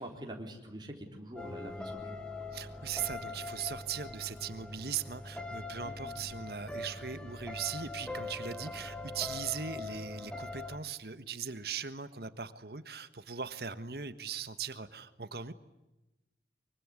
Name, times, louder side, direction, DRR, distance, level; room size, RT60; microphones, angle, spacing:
voice 1, 0.0-2.2 5.8-6.1, right 1 dB, 25° right, 1 dB, 4.0 m, -44 dB
sound 1, 1.4-10.8, left 2 dB, 5° left, 1.8 m, -42 dB
voice 2, 2.5-15.5, right 7 dB, 60° right, 12 dB, 1.4 m, -39 dB
24.0 x 24.0 x 9.8 m, 1.0 s
head